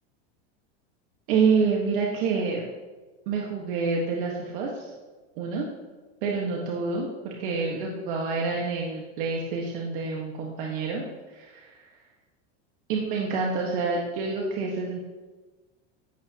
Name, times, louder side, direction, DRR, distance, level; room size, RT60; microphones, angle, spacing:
voice 1, 1.3-2.6 3.3-4.9 5.4-5.6 6.2-11.8 12.9-15.0, right 4 dB, 55° right, -1 dB, 1.6 m, -27 dB
15.5 x 11.5 x 3.0 m, 1.3 s
supercardioid pair, 175°, 32 cm